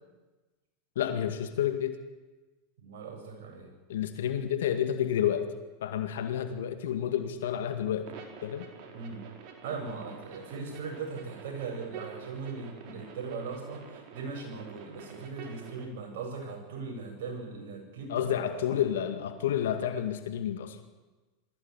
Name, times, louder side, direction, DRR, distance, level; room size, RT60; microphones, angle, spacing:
voice 1, 1.0-2.0 3.9-5.5 5.8-8.1 8.4-8.7 18.1-20.8, left 10 dB, 80° left, 8 dB, 2.1 m, -30 dB
voice 2, 2.8-3.7 8.9-9.2 9.6-18.8, right 4 dB, 70° right, 2 dB, 8.0 m, -39 dB
sound 1, 8.0-15.8, right 6 dB, 55° right, 4.4 m, -48 dB
21.0 x 15.5 x 10.0 m, 1.2 s
hypercardioid pair, 105°, 0 cm